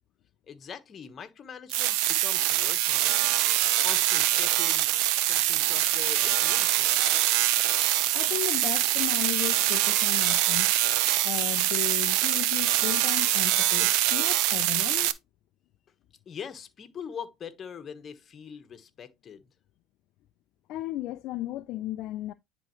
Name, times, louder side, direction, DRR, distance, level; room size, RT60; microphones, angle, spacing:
voice 1, 0.5-3.4 3.8-7.3 16.3-19.4, left 7 dB, 35° left, 1.3 m, -43 dB
sound 1, 1.7-15.1, right 14 dB, 70° right, 0.6 m, -24 dB
voice 2, 8.1-10.7 11.2-15.2 20.7-22.3, left 15 dB, 60° left, 0.5 m, -35 dB
10.0 x 3.8 x 3.1 m
supercardioid pair, 105°, 0 cm